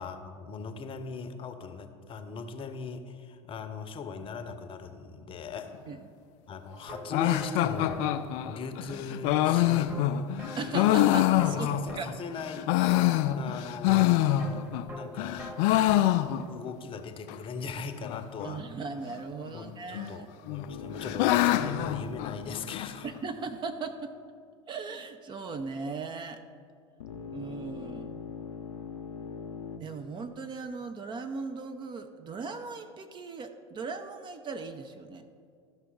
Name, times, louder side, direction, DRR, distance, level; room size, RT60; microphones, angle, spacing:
voice 1, 0.0-5.7 6.5-8.0 8.4-9.9 10.7-12.7 13.3-14.1 14.9-15.5 16.5-18.6 19.5-23.1, left 5 dB, 35° left, 8 dB, 0.8 m, -39 dB
sound 1, 6.7-16.6, right 1 dB, 15° right, 1.3 m, -45 dB
sound 2, 7.1-12.1 12.5-14.9 15.2-16.7 17.0-17.1 17.3-17.4 18.0-18.5 19.5-20.1 20.5-22.9, left 13 dB, 55° left, 0.4 m, -26 dB
voice 2, 10.6-12.1 18.4-20.3 23.0-24.1 24.7-26.4 27.3-28.2 29.8-35.3, right 4 dB, 30° right, 7 dB, 0.6 m, -38 dB
sound 3, 20.7-24.0 27.0-29.8, left 6 dB, 80° left, 0.7 m, -42 dB
13.5 x 5.9 x 3.8 m, 2.2 s
hypercardioid pair, 80°, 16 cm